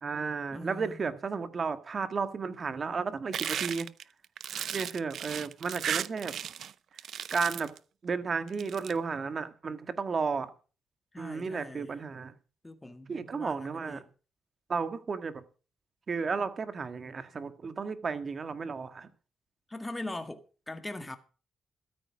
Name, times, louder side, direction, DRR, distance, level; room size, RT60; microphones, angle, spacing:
voice 1, 0.0-3.9 4.7-6.3 7.3-7.7 8.0-10.5 11.2-12.3 13.1-14.0 14.7-15.4 16.1-19.1, right 5 dB, 50° right, 1.7 m, -33 dB
voice 2, 0.5-1.0 11.1-12.0 12.6-14.1 19.7-21.2, left 2 dB, 20° left, 1.8 m, -41 dB
sound 1, 3.3-6.7 7.0-7.8 8.5-8.9, right 9 dB, 75° right, 0.6 m, -35 dB
13.0 x 9.5 x 6.0 m
cardioid pair, 65°, 0 cm